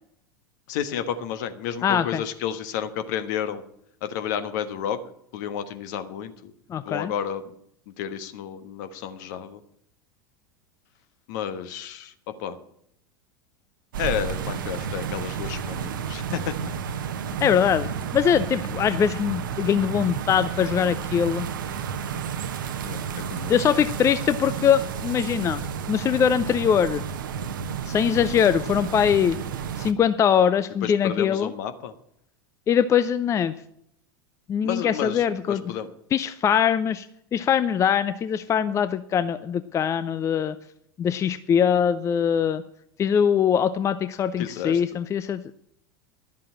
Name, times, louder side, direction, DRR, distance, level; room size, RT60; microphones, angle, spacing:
voice 1, 0.7-3.6 4.0-5.0 5.3-6.5 6.8-7.4 7.9-9.6 11.3-12.6 14.0-16.5 16.9-17.0 22.8-23.6 30.8-31.9 34.6-35.9 44.4-45.0, left 9 dB, 55° left, 10 dB, 1.3 m, -31 dB
voice 2, 1.8-2.2 6.7-7.1 17.4-21.5 23.5-25.6 25.9-27.0 27.9-29.4 29.8-31.5 32.7-33.5 34.5-35.6 36.1-37.1 37.3-40.6 41.0-42.6 43.0-45.4, left 8 dB, 25° left, 13 dB, 0.5 m, -22 dB
sound 1, 13.9-29.9, right 7 dB, 65° right, 0.9 m, -31 dB
11.5 x 7.5 x 8.7 m, 0.72 s
figure-of-eight pair, 85°, 11 cm